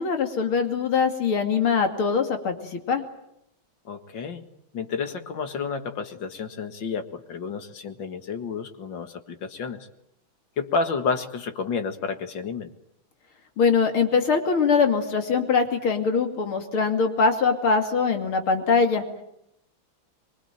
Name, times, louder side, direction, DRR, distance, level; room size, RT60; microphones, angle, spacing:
voice 1, 0.0-3.0 13.6-19.0, left 5 dB, 80° left, 5 dB, 3.4 m, -22 dB
voice 2, 3.9-4.5 4.7-9.9 10.6-12.7, left 5 dB, 60° left, 8 dB, 2.5 m, -30 dB
24.0 x 24.0 x 9.1 m, 0.79 s
omnidirectional pair, 2.3 m